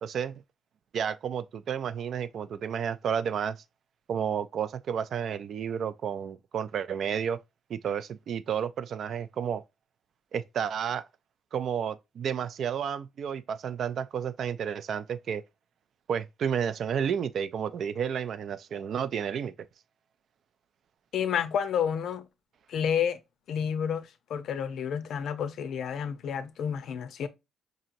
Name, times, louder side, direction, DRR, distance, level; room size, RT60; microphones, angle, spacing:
voice 1, 0.0-0.4 0.9-3.6 4.1-7.4 7.7-9.6 10.3-11.1 11.5-15.4 16.1-19.5, right 8 dB, 65° right, 0.3 m, -31 dB
voice 2, 21.1-22.2 22.7-23.2 23.5-27.3, left 8 dB, 70° left, 0.5 m, -30 dB
5.1 x 2.9 x 2.5 m
cardioid pair, 90°, 0 cm